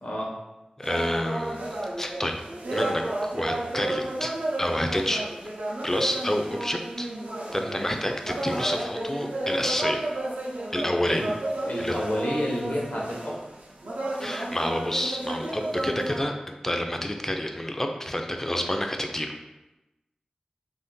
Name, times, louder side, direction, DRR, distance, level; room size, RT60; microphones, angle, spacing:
voice 1, 0.0-0.3 7.6-8.0 11.0-11.4 11.6-13.4, equal, 70° left, -3 dB, 0.8 m, -30 dB
voice 2, 0.8-2.4 2.7-5.3 5.8-7.1 7.5-10.0 10.7-11.2 11.8-12.0 14.2-19.3, left 1 dB, 15° left, 4 dB, 0.3 m, -29 dB
sound 1, 0.8-16.2, right 1 dB, 85° right, 0.4 m, -32 dB
2.5 x 2.2 x 3.6 m, 1.0 s
wide cardioid pair, 50°, 3 cm